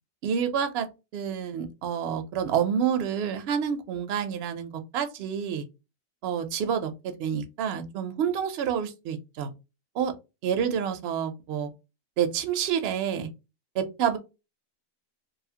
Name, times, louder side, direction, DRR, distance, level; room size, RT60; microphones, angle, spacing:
voice 1, 0.2-5.7 6.2-9.5 9.9-10.1 10.4-11.7 12.2-13.3 13.7-14.2, right 8 dB, 60° right, 0.7 m, -28 dB
2.7 x 2.4 x 2.7 m
omnidirectional pair, 1.4 m